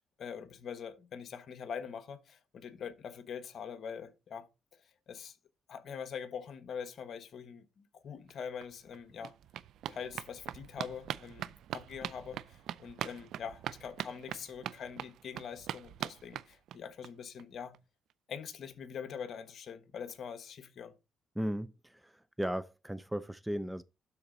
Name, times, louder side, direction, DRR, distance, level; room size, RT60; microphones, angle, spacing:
voice 1, 0.2-4.5 5.1-5.4 5.7-9.3 9.9-17.7 18.3-20.9, left 7 dB, 60° left, 1.2 m, -43 dB
sound 1, 8.3-8.4 8.6-17.1 17.4-17.5 17.7-17.8 18.1-18.2, right 11 dB, 75° right, 0.4 m, -42 dB
voice 2, 21.4-23.8, equal, 5° right, 0.5 m, -36 dB
12.0 x 4.1 x 3.9 m
cardioid pair, 90°, 0 cm